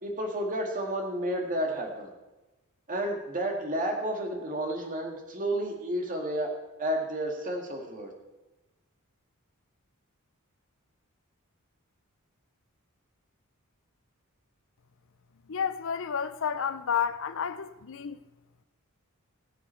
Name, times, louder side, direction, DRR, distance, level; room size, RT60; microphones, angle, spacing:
voice 1, 0.0-2.1 2.9-6.5 6.8-8.1, right 1 dB, 35° right, 2.0 m, -31 dB
voice 2, 15.5-18.2, left 7 dB, 60° left, 0.6 m, -31 dB
20.0 x 8.3 x 4.5 m
head